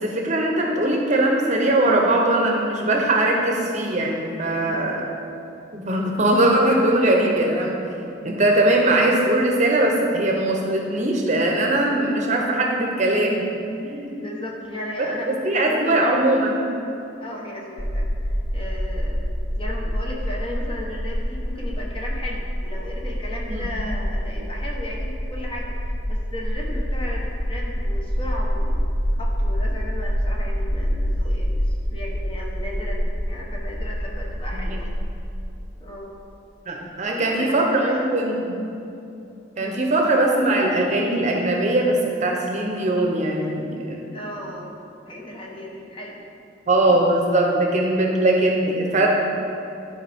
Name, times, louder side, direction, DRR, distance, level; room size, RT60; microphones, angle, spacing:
voice 1, 0.0-5.0 5.7-7.8 8.2-13.4 13.8-14.1 15.2-16.6 23.5-23.7 34.5-34.6 36.7-38.6 39.6-44.0 46.7-49.1, right 1 dB, 40° right, 0 dB, 0.8 m, -20 dB
voice 2, 4.5-5.0 14.1-16.1 17.2-19.2 19.6-28.9 29.2-34.9 35.8-36.1 37.0-38.0 39.6-39.8 44.1-44.7 45.1-46.2, left 1 dB, 30° left, -3 dB, 1.2 m, -35 dB
sound 1, 17.8-35.6, equal, 15° left, 0.4 m, -26 dB
11.5 x 4.9 x 3.6 m, 2.7 s
head